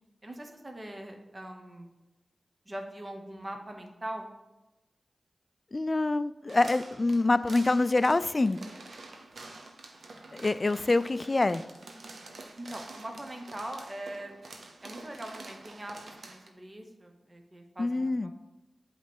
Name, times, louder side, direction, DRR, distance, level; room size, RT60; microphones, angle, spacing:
voice 1, 0.2-1.9 2.7-4.3 12.6-14.3 14.8-18.1, right 1 dB, 30° right, 3 dB, 1.1 m, -41 dB
voice 2, 5.7-8.6 10.3-11.6 17.8-18.3, left 2 dB, 40° left, 14 dB, 0.3 m, -26 dB
sound 1, 6.5-16.5, right 2 dB, 75° right, 0.8 m, -48 dB
8.1 x 3.2 x 6.1 m, 1.0 s
cardioid pair, 50°, 0 cm